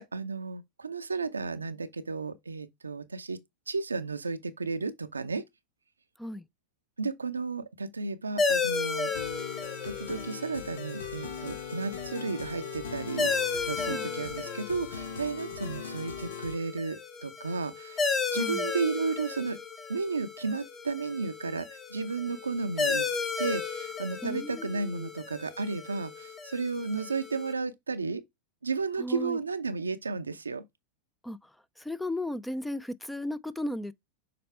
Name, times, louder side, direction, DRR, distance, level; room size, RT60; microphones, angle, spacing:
voice 1, 0.0-3.4 3.7-5.4 7.0-9.1 9.8-18.1 18.3-19.6 19.9-23.1 23.4-28.2 28.6-30.6, right 4 dB, 80° right, 0.6 m, -33 dB
sound 1, 8.4-27.5, left 4 dB, 25° left, 1.2 m, -34 dB
sound 2, 9.2-16.5, left 6 dB, 70° left, 0.9 m, -40 dB
voice 2, 18.3-18.6 24.2-25.1 29.0-29.4 31.2-31.4 31.8-33.9, left 1 dB, 5° left, 0.5 m, -35 dB
6.7 x 4.3 x 3.3 m
figure-of-eight pair, 90°, 0 cm